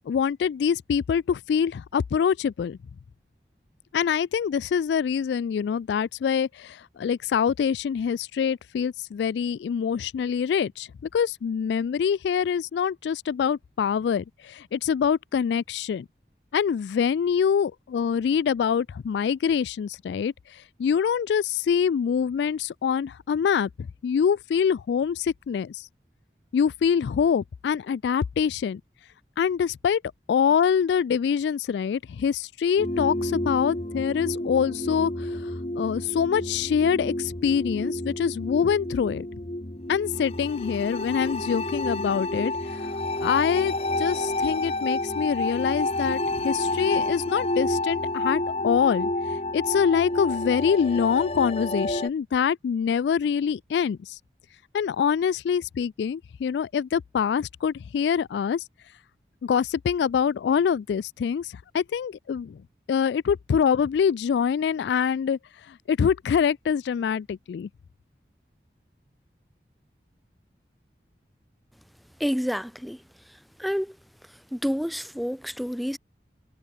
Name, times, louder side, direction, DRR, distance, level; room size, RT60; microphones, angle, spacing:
voice 1, 0.0-2.8 3.9-16.1 16.5-23.7 24.0-25.9 26.5-28.8 29.4-30.0 30.3-35.5 35.8-39.3 39.9-42.9 43.2-49.1 49.5-54.2 54.7-58.6 59.4-62.6 62.9-65.4 65.7-67.7, left 7 dB, 80° left, 0.3 m, -25 dB
sound 1, 32.8-52.1, left 2 dB, 35° left, 1.9 m, -29 dB
voice 2, 72.2-73.0 73.3-74.0 74.5-76.0, equal, ahead, 1.1 m, -29 dB
head